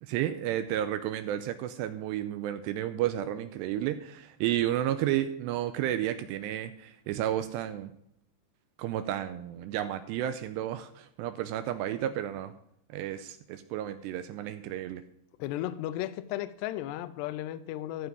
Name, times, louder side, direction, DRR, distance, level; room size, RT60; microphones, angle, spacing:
voice 1, 0.0-7.9 8.8-12.5 12.9-15.0, right 12 dB, 85° right, 2.5 m, -32 dB
voice 2, 15.4-18.1, left 13 dB, 85° left, 2.5 m, -35 dB
14.0 x 5.8 x 5.4 m
omnidirectional pair, 5.4 m